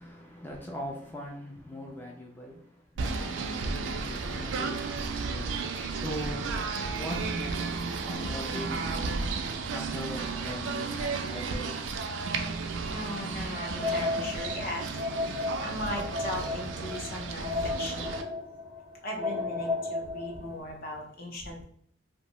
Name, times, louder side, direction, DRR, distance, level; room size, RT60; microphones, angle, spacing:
voice 1, 0.0-2.6 3.0-3.3 3.7-4.8 5.3-5.6 5.9-6.4 7.0-7.7 8.0-9.1 9.7-11.7, left 1 dB, 10° left, 0.3 m, -40 dB
Singing / Bird, 3.0-18.2, right 4 dB, 90° right, 0.3 m, -33 dB
voice 2, 12.9-15.1 15.6-18.2 19.0-21.6, left 1 dB, 55° left, 0.6 m, -38 dB
sound 1, 13.5-20.6, left 3 dB, 80° left, 1.0 m, -34 dB
2.6 x 2.0 x 2.9 m
head